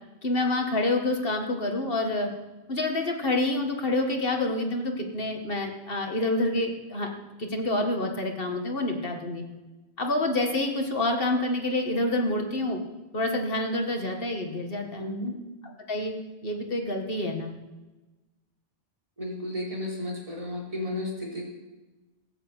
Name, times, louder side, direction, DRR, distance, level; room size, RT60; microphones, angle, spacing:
voice 1, 0.2-2.3 2.7-7.1 7.4-9.4 10.0-12.8 13.1-15.0 15.9-16.1 16.4-17.5, left 2 dB, 55° left, 3 dB, 2.0 m, -27 dB
voice 2, 15.0-15.3 19.2-21.4, left 1 dB, 30° right, -3 dB, 4.2 m, -33 dB
16.0 x 8.5 x 8.1 m, 1.1 s
omnidirectional pair, 1.1 m